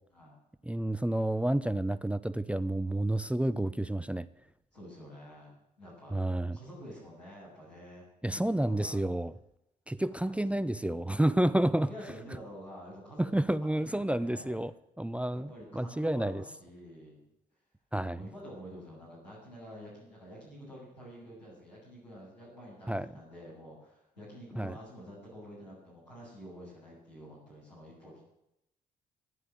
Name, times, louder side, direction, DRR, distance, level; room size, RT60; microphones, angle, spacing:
voice 1, 0.6-4.3 6.1-6.6 8.2-9.3 9.9-11.9 13.2-16.4 17.9-18.2 22.9-23.1 24.6-24.8, right 1 dB, 5° right, 16 dB, 0.6 m, -30 dB
voice 2, 4.7-6.2 6.5-9.0 10.2-11.1 11.8-14.6 15.3-17.2 18.1-28.2, equal, 85° left, -6 dB, 7.4 m, -48 dB
14.0 x 11.0 x 7.8 m, 0.85 s
figure-of-eight pair, 45°, 21 cm